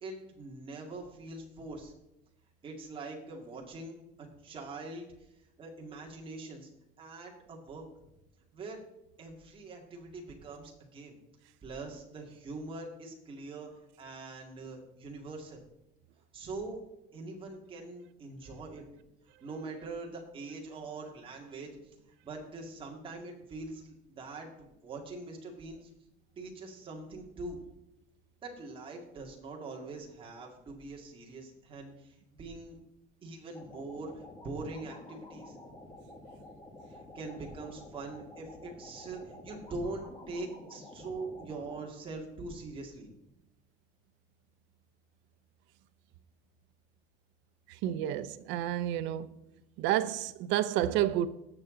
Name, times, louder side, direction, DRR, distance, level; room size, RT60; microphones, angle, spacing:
voice 1, 0.0-1.9 2.6-5.1 5.6-6.7 7.0-8.1 8.5-8.8 9.2-11.1 11.6-13.7 14.0-15.6 16.3-16.8 17.1-18.9 19.4-21.7 22.2-25.9 26.4-27.6 28.4-32.8 33.2-35.6 36.9-43.1, right 3 dB, 30° right, 2.2 m, -43 dB
sound 1, 33.5-41.8, left 2 dB, 20° left, 2.3 m, -50 dB
voice 2, 47.7-49.3 49.8-51.3, right 12 dB, 80° right, 0.7 m, -30 dB
18.0 x 7.0 x 3.9 m
cardioid pair, 165°, 19 cm